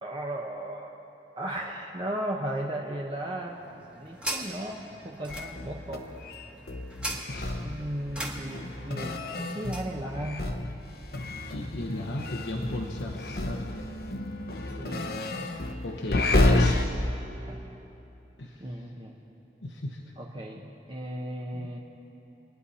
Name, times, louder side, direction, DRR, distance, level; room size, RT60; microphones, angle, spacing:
voice 1, 0.0-0.9 1.4-3.6 4.0-6.0 7.6-10.5 14.7-15.1 17.5-17.7 18.6-19.1 20.2-21.8, right 1 dB, 30° right, -1 dB, 0.9 m, -36 dB
sound 1, 3.3-9.9, right 1 dB, 5° right, 1.3 m, -40 dB
sound 2, 5.3-10.8 11.1-16.8, left 2 dB, 60° left, 0.8 m, -30 dB
voice 2, 11.3-13.9 15.8-16.9 18.4-18.9 19.6-20.0 21.5-21.7, left 1 dB, 80° left, 0 dB, 1.0 m, -37 dB
26.0 x 10.0 x 4.2 m, 2.9 s
head